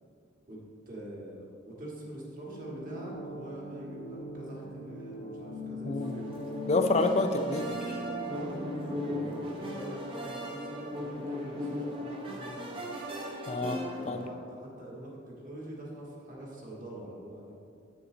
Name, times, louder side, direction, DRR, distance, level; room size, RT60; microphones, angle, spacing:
voice 1, 0.5-6.3 6.5-6.9 8.3-12.8 13.9-17.6, right 1 dB, 40° right, -4 dB, 1.7 m, -44 dB
sound 1, 2.4-9.6, left 1 dB, 75° left, 1.8 m, -41 dB
voice 2, 5.8-6.2 6.7-8.0 13.5-13.8 14.1-14.2, left 2 dB, 30° left, 7 dB, 0.4 m, -28 dB
sound 2, 6.0-14.3, equal, 25° right, 0.9 m, -37 dB
7.9 x 6.9 x 3.8 m, 2.4 s
head